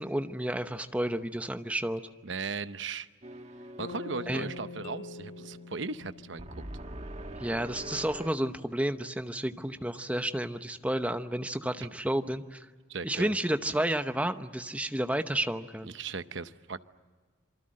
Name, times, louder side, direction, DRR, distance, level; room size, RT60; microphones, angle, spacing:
voice 1, 0.0-2.0 4.3-4.5 7.4-12.7 13.0-15.9, right 1 dB, 5° right, 9 dB, 0.8 m, -31 dB
voice 2, 2.2-3.1 3.8-6.6 11.8-11.9 12.9-13.3 15.9-16.8, right 4 dB, 70° right, 12 dB, 0.9 m, -37 dB
sound 1, 3.2-8.3, right 1 dB, 35° right, 1.3 m, -44 dB
Bass guitar, 3.8-7.9, left 4 dB, 65° left, 0.8 m, -46 dB
sound 2, 4.8-6.8, equal, 45° left, 2.6 m, -49 dB
27.0 x 24.5 x 7.7 m, 1.5 s
head